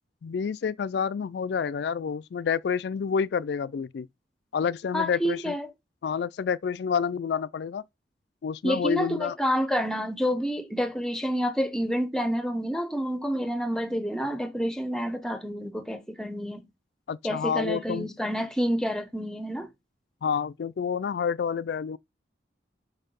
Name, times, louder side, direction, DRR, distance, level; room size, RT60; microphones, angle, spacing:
voice 1, 0.2-4.1 4.5-5.6 6.0-7.8 8.4-9.4 17.1-18.1 20.2-22.0, left 6 dB, 70° left, 0.3 m, -28 dB
voice 2, 4.9-5.7 8.6-16.7 17.2-19.7, equal, 5° left, 0.7 m, -28 dB
5.6 x 5.3 x 5.3 m
head